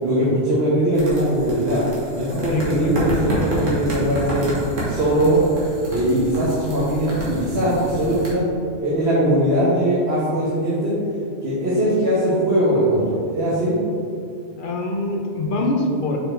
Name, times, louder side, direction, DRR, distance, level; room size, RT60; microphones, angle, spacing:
voice 1, 0.0-1.8 2.1-4.5 4.9-5.4 5.9-8.4 8.8-11.0 11.4-13.7, right 1 dB, 55° right, -8 dB, 1.4 m, -20 dB
sound 1, 0.9-8.3, right 1 dB, 80° right, 1.8 m, -29 dB
voice 2, 2.5-3.1 14.6-16.2, left 2 dB, 50° left, 1 dB, 0.8 m, -24 dB
5.3 x 4.3 x 4.4 m, 2.4 s
omnidirectional pair, 1.3 m